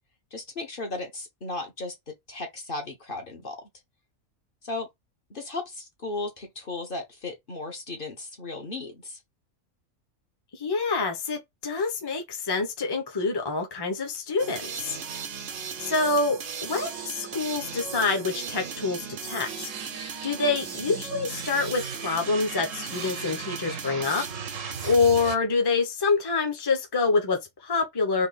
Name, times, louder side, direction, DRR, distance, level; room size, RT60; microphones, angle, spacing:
voice 1, 0.3-3.6 4.6-4.9 5.3-9.2, left 2 dB, 45° left, 1.3 m, -35 dB
voice 2, 10.5-15.0 15.8-24.2 24.8-28.3, left 4 dB, 20° left, 0.9 m, -26 dB
sound 1, 14.4-25.4, right 6 dB, 80° right, 1.3 m, -36 dB
3.6 x 2.9 x 4.1 m
omnidirectional pair, 1.3 m